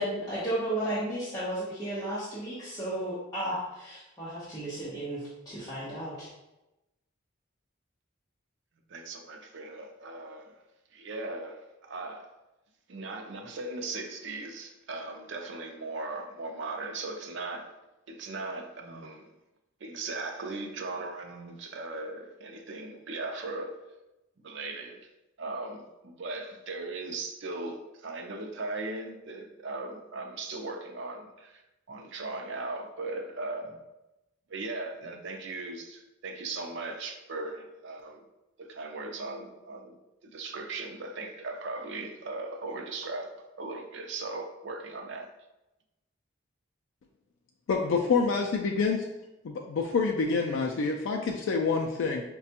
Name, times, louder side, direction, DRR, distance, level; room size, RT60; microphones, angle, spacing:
voice 1, 0.0-6.3, right 1 dB, 20° left, -11 dB, 0.8 m, -33 dB
voice 2, 8.9-10.6 10.9-12.3 12.9-17.7 18.1-19.3 19.8-23.8 24.4-25.0 25.4-31.6 31.9-33.8 34.5-38.3 38.6-40.0 40.3-45.3, right 3 dB, 60° right, 3 dB, 0.5 m, -38 dB
voice 3, 47.7-49.0 49.4-52.2, left 4 dB, 65° left, 2 dB, 0.3 m, -27 dB
4.9 x 2.2 x 2.8 m, 0.96 s
head